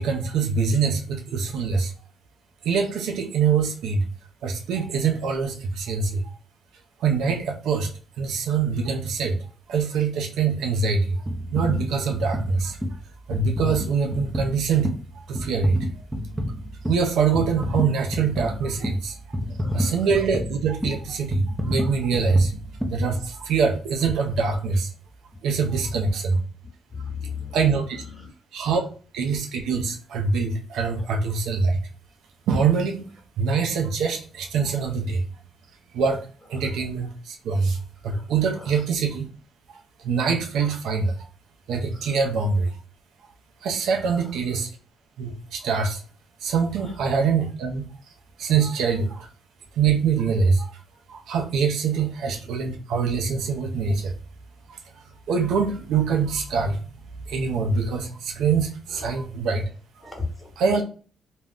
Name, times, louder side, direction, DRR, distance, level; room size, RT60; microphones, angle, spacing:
voice 1, 0.0-1.9 2.6-4.1 4.4-6.2 7.0-7.9 8.2-9.4 9.7-11.2 11.5-12.8 13.3-14.9 15.2-15.8 16.9-19.2 19.7-22.5 22.9-24.9 25.4-26.4 27.5-28.0 28.5-28.8 29.1-31.8 32.5-33.1 33.4-35.2 35.9-36.2 36.5-37.8 38.0-39.3 39.7-39.8 40.0-41.1 41.7-42.7 43.6-44.7 45.2-46.0 46.4-47.9 48.4-49.3 49.8-50.7 51.1-54.1 54.7-54.8 55.3-56.8 57.3-59.6 60.0-60.1 60.6-60.8, right 5 dB, 80° right, 4 dB, 0.5 m, -24 dB
sound 1, 11.3-23.7 24.2-24.4, equal, 10° right, 0.6 m, -30 dB
voice 2, 19.6-20.1 24.1-24.2 25.6-26.1 26.9-28.3 30.9-31.1 36.5-36.7 38.0-38.2 38.5-38.8 41.9-42.2 44.0-44.4 46.7-47.0 51.9-52.1 58.9-59.1 60.0-60.5, left 4 dB, 10° left, 1 dB, 1.0 m, -37 dB
2.4 x 2.1 x 3.5 m, 0.40 s
cardioid pair, 90°, 0 cm